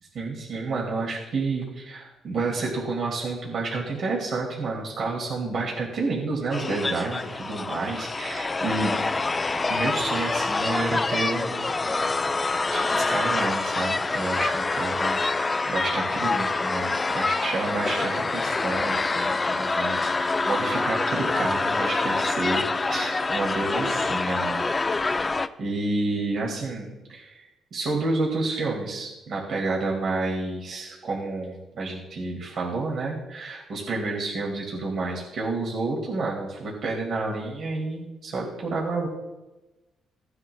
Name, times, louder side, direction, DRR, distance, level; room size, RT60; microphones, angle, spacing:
voice 1, 0.1-8.9 9.7-12.2 12.7-24.7 25.6-39.1, right 3 dB, 60° right, -2 dB, 2.4 m, -30 dB
sound 1, 6.5-25.5, left 3 dB, 25° left, 0.4 m, -26 dB
16.0 x 9.7 x 2.3 m, 1.1 s
cardioid pair, 90°, 0 cm